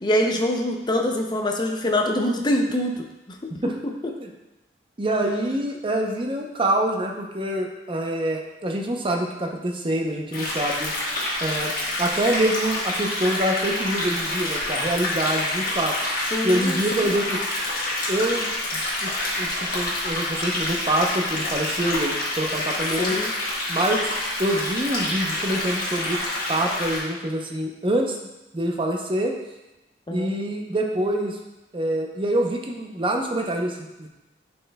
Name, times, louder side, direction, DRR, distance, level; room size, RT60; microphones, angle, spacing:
voice 1, 0.0-3.0 3.6-3.7 16.3-17.1 23.0-23.3 30.1-30.3, left 1 dB, 25° left, 2 dB, 0.6 m, -24 dB
voice 2, 5.0-10.9 11.4-11.7 12.0-16.0 16.4-17.4 18.1-23.2 23.7-24.1 24.4-26.2 26.5-28.2 28.5-29.3 30.1-31.4 31.7-34.1, right 1 dB, 30° right, 1 dB, 0.7 m, -25 dB
sound 1, 10.3-27.0, left 1 dB, 55° left, 1.4 m, -27 dB
9.7 x 4.4 x 2.3 m, 1.0 s
head